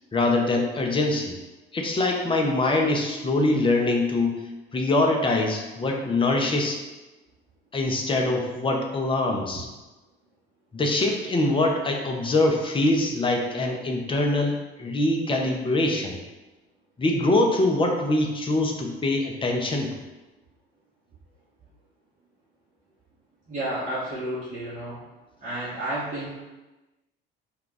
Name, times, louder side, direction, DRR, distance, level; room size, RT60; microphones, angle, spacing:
voice 1, 0.1-1.4 1.7-4.5 4.7-6.8 7.7-9.7 10.7-16.2 17.0-19.9, left 2 dB, 15° left, 1 dB, 0.5 m, -23 dB
voice 2, 23.5-25.0 25.4-26.3, right 1 dB, 25° right, -10 dB, 0.9 m, -31 dB
2.3 x 2.2 x 3.8 m, 1.1 s
figure-of-eight pair, 55°, 30 cm